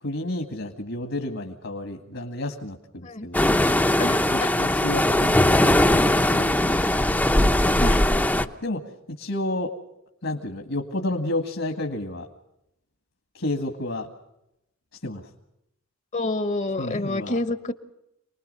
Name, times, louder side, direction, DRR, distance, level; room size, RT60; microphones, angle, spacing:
voice 1, 0.0-3.4 4.3-6.5 7.3-7.7 8.1-8.8 9.2-9.7 10.2-12.3 13.3-14.1 15.0-15.2 16.8-17.4, left 1 dB, 65° left, 4 dB, 2.0 m, -31 dB
sound 1, 3.3-8.5, left 1 dB, 10° left, 0.8 m, -20 dB
voice 2, 4.0-4.5 7.8-8.0 16.1-17.7, left 2 dB, 35° left, 11 dB, 1.1 m, -28 dB
28.0 x 20.5 x 5.5 m, 0.84 s
head